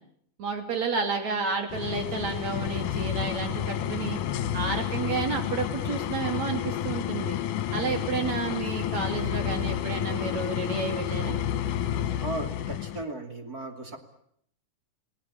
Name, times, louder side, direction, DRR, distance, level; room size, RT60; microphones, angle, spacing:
voice 1, 0.4-4.2 4.5-7.4 7.7-11.4, right 4 dB, 55° right, 5 dB, 4.3 m, -31 dB
sound 1, 1.7-13.0, left 10 dB, 70° left, 2.6 m, -30 dB
voice 2, 12.2-14.0, right 2 dB, 30° right, 5 dB, 2.9 m, -36 dB
29.5 x 18.5 x 8.7 m, 0.69 s
omnidirectional pair, 3.9 m